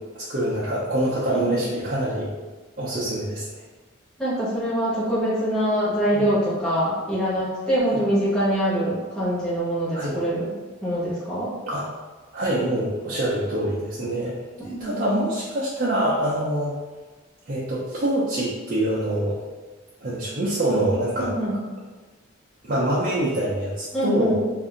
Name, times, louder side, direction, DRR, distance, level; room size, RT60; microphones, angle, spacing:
voice 1, 0.1-2.3 2.8-3.6 6.1-6.2 7.9-8.0 9.9-10.1 11.7-11.9 12.3-14.4 14.8-16.7 17.5-19.4 20.0-21.3 22.6-24.4, right 1 dB, 40° right, -8 dB, 0.5 m, -25 dB
voice 2, 1.3-1.6 4.2-10.5 10.8-11.5 14.6-14.9 21.2-21.5 23.9-24.4, right 1 dB, 5° left, -11 dB, 1.0 m, -24 dB
2.6 x 2.5 x 3.7 m, 1.3 s
head